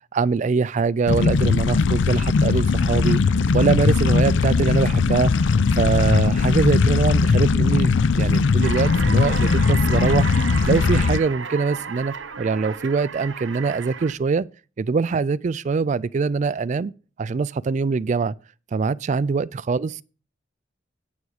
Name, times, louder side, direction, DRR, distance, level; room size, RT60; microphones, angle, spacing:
voice 1, 0.1-10.3 10.6-14.5 14.8-16.9 17.2-18.3 18.7-20.0, right 4 dB, 40° right, 0.3 m, -23 dB
sound 1, 1.1-11.2, left 4 dB, 70° left, 0.4 m, -19 dB
sound 2, 8.6-14.1, right 6 dB, 75° right, 0.9 m, -33 dB
9.5 x 6.2 x 4.8 m
head